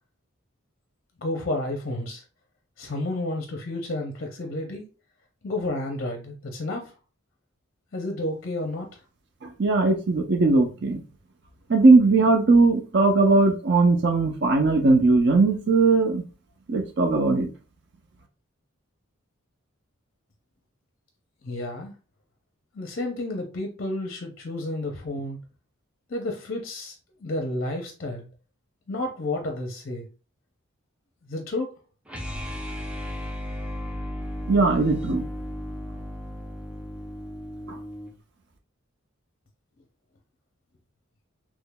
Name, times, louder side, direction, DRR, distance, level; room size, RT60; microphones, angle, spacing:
voice 1, 1.2-2.2 2.8-4.9 5.4-6.9 7.9-9.0 21.4-21.9 22.7-25.4 26.1-27.0 27.2-28.3 28.9-30.0 31.2-31.8, left 1 dB, 45° left, 0.6 m, -31 dB
voice 2, 9.6-11.0 11.7-16.2 16.7-17.5 34.5-35.2 37.7-37.8, right 3 dB, 55° right, 0.5 m, -19 dB
sound 1, 32.1-38.2, equal, 5° right, 0.5 m, -35 dB
3.7 x 3.0 x 2.2 m
head